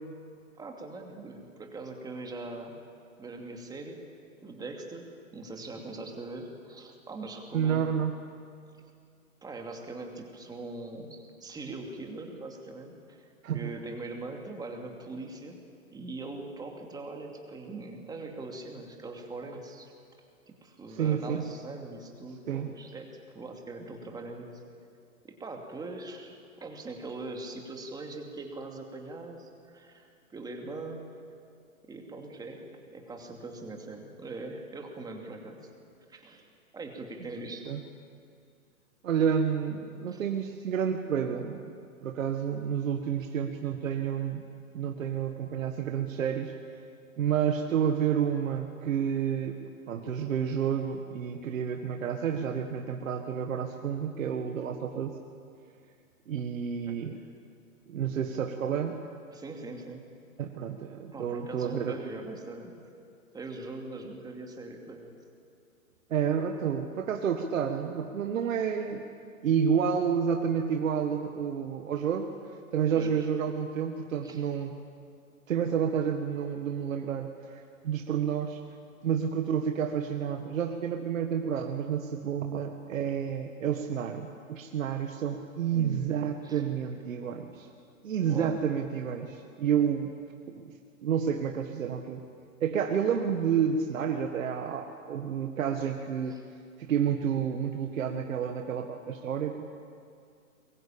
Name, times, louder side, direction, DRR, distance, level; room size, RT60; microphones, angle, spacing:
voice 1, 0.6-2.8 3.2-4.0 4.4-7.9 9.4-15.6 15.9-19.9 20.5-24.6 25.2-31.0 31.9-35.6 36.1-36.5 36.7-37.8 40.1-40.2 56.9-57.0 59.3-60.0 61.1-62.7 63.3-65.1 73.0-73.3 74.2-74.4 85.7-86.0 86.4-86.6 88.2-88.6 96.3-96.4, right 2 dB, 10° right, 2 dB, 2.6 m, -41 dB
voice 2, 7.5-8.2 13.4-13.7 20.9-21.4 22.5-22.7 37.7-37.8 39.0-41.6 42.0-44.4 44.7-46.5 47.2-49.6 49.9-55.2 56.3-57.2 57.9-59.0 60.4-62.0 66.1-69.0 69.4-72.3 72.7-74.8 75.5-78.6 79.0-87.7 88.0-90.1 90.5-90.7 91.0-92.2 92.6-96.4 96.8-99.7, right 7 dB, 65° right, 4 dB, 1.8 m, -30 dB
23.5 x 21.5 x 8.9 m, 2.4 s
hypercardioid pair, 140°, 42 cm